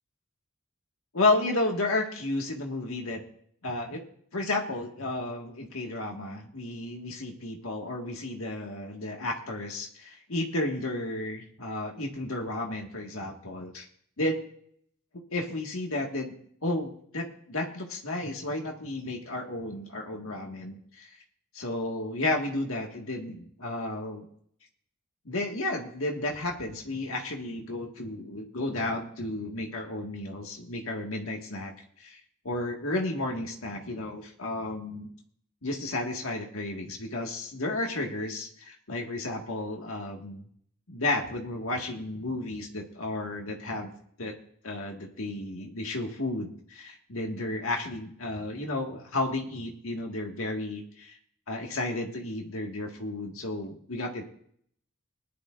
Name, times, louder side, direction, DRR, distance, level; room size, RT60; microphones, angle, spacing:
voice 1, 1.1-3.2 3.6-4.0 4.3-13.9 14.2-14.4 15.1-16.3 16.6-21.1 21.5-24.3 25.3-31.7 32.0-32.2 32.4-35.1 35.6-40.4 40.9-43.9 44.2-44.3 44.6-51.1 51.5-54.2, left 2 dB, 70° left, 1 dB, 1.8 m, -32 dB
20.5 x 11.0 x 2.5 m, 0.63 s
head